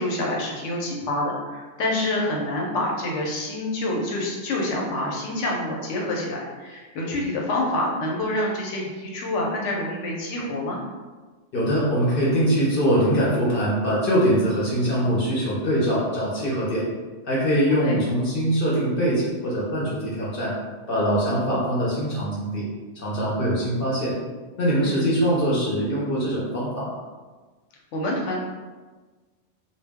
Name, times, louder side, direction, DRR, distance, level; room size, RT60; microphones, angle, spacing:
voice 1, 0.0-10.8 17.8-18.0 24.8-25.1 27.9-28.4, left 1 dB, 80° left, -2 dB, 1.0 m, -27 dB
voice 2, 11.5-16.8 17.2-20.5 20.9-22.7 22.9-24.2 24.6-27.0, equal, 55° left, -6 dB, 0.8 m, -23 dB
2.2 x 2.1 x 3.4 m, 1.3 s
omnidirectional pair, 1.2 m